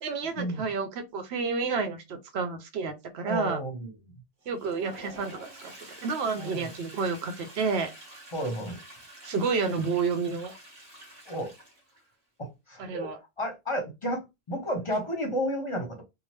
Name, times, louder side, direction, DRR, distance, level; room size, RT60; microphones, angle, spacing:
voice 1, 0.0-3.6 4.5-5.7 6.0-7.9 9.2-10.5 12.8-13.2, right 4 dB, 80° right, 0.9 m, -30 dB
voice 2, 3.2-3.9 6.4-6.7 8.3-8.8 11.3-11.5 12.4-13.1 13.4-14.2 14.5-16.0, equal, 35° left, 0.7 m, -32 dB
Toilet flush, 4.4-12.1, right 1 dB, 40° right, 1.2 m, -48 dB
2.8 x 2.0 x 3.1 m
omnidirectional pair, 1.1 m